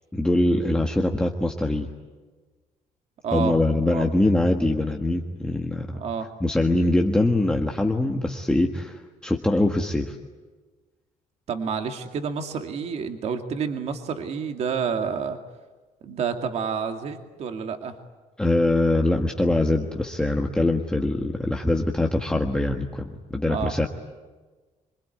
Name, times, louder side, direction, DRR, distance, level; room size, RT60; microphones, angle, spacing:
voice 1, 0.1-1.9 3.3-6.0 6.4-10.1 18.4-23.9, left 1 dB, 5° left, 1 dB, 1.6 m, -23 dB
voice 2, 3.2-3.5 3.9-4.1 5.9-6.3 11.5-15.4 16.0-17.9 23.5-23.7, right 6 dB, 50° right, 5 dB, 2.4 m, -29 dB
26.5 x 23.5 x 9.4 m, 1.3 s
cardioid pair, 160°, 14 cm